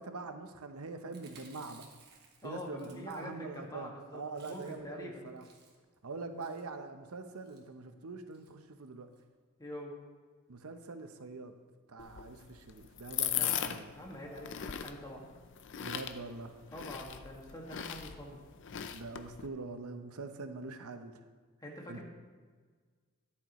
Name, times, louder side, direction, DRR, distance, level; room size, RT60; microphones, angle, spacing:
voice 1, 0.0-1.9 2.4-5.4 6.0-9.1 10.5-11.5 11.9-13.9 15.8-16.6 18.9-21.2 21.9-22.0, right 3 dB, 80° right, 8 dB, 0.8 m, -44 dB
Chewing mastication, 1.0-3.6 3.9-4.0 4.2-4.9 5.3-5.9 6.4-6.7 7.3-7.6 8.3-8.5 8.9-9.0 9.1-9.2, right 5 dB, 50° right, 1.6 m, -60 dB
voice 2, 2.4-5.3 9.6-10.0 13.2-15.3 16.7-18.4 21.6-22.0, left 1 dB, 15° left, -1 dB, 1.8 m, -45 dB
sound 1, 12.0-19.5, left 10 dB, 55° left, 0.6 m, -39 dB
13.0 x 10.5 x 3.1 m, 1.5 s
head